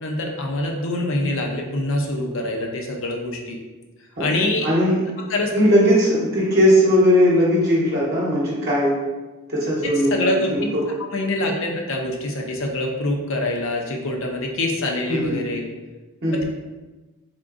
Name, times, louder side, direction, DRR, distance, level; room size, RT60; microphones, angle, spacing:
voice 1, 0.0-3.6 4.2-4.7 5.3-5.5 10.1-10.7 11.1-15.6, left 1 dB, 60° left, 1 dB, 0.6 m, -25 dB
voice 2, 4.6-5.0 5.5-9.0 9.5-10.9 15.1-15.4 16.2-16.4, equal, 45° right, -7 dB, 0.9 m, -18 dB
3.7 x 3.6 x 2.5 m, 1.2 s
head